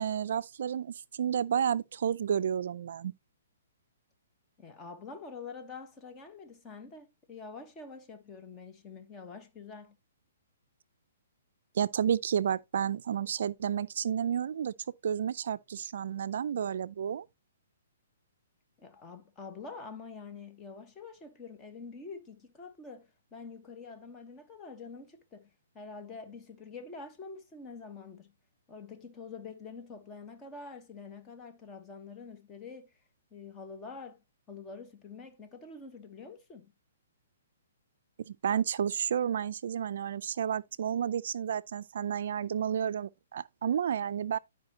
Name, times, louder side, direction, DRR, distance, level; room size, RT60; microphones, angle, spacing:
voice 1, 0.0-3.1 11.7-14.7 15.0-17.3 38.2-44.4, right 8 dB, 65° right, 0.4 m, -31 dB
voice 2, 4.6-10.0 18.8-28.3 28.7-32.9 33.3-34.2 34.5-36.7, left 4 dB, 15° left, 1.2 m, -46 dB
12.0 x 4.9 x 2.8 m
hypercardioid pair, 155°, 0 cm